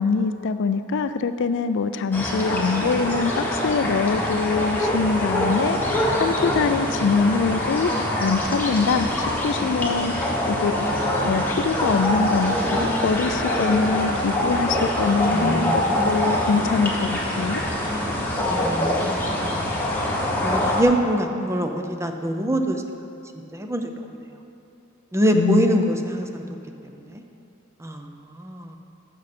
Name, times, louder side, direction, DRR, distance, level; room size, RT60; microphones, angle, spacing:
voice 1, 0.0-7.9 8.2-10.7 11.2-17.6 25.3-25.9, left 5 dB, 60° left, 11 dB, 0.4 m, -24 dB
sound 1, 2.1-20.8, left 1 dB, 10° left, 1.3 m, -24 dB
voice 2, 15.3-16.5 17.9-18.2 18.5-19.7 20.4-23.0 23.5-24.2 25.1-26.4 27.1-27.2 27.8-28.8, equal, 15° right, 5 dB, 0.5 m, -25 dB
14.0 x 6.3 x 4.3 m, 2.8 s
head